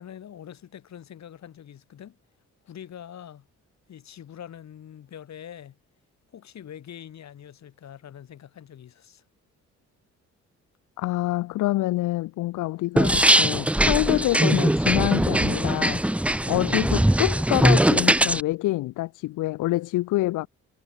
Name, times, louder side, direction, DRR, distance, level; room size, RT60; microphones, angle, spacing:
voice 1, 0.0-2.2 2.6-3.5 3.9-5.8 6.3-9.2, left 9 dB, 65° left, 8.0 m, -44 dB
voice 2, 11.0-20.5, left 17 dB, 90° left, 0.9 m, -26 dB
sound 1, 13.0-18.4, right 1 dB, 5° right, 1.1 m, -21 dB
cardioid pair, 90°, 30 cm